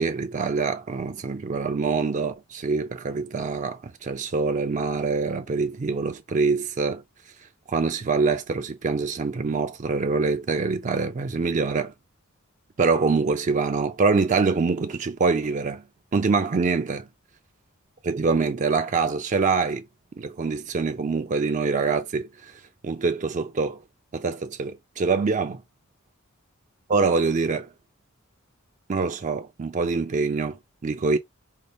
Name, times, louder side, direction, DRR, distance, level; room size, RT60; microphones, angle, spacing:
voice 1, 0.0-7.0 7.7-11.9 12.8-15.8 16.1-17.1 18.0-19.8 20.2-23.8 24.1-25.6 26.9-27.7 28.9-31.2, right 4 dB, 35° right, 0.4 m, -25 dB
5.3 x 2.0 x 3.4 m
head